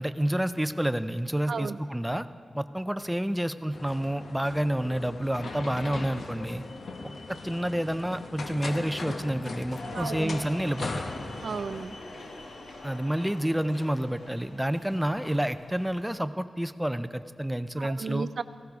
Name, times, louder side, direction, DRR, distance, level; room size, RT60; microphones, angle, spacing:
voice 1, 0.0-2.3 2.5-6.6 7.3-11.0 12.8-18.3, right 1 dB, 5° right, 12 dB, 0.4 m, -29 dB
voice 2, 1.5-1.8 9.9-10.4 11.4-11.9 17.7-18.4, right 5 dB, 70° right, 12 dB, 0.5 m, -34 dB
sound 1, 3.7-11.9, left 3 dB, 60° left, 1.0 m, -39 dB
sound 2, 9.7-16.1, left 2 dB, 80° left, 1.6 m, -44 dB
17.5 x 16.0 x 3.6 m, 2.4 s
wide cardioid pair, 115°, 0 cm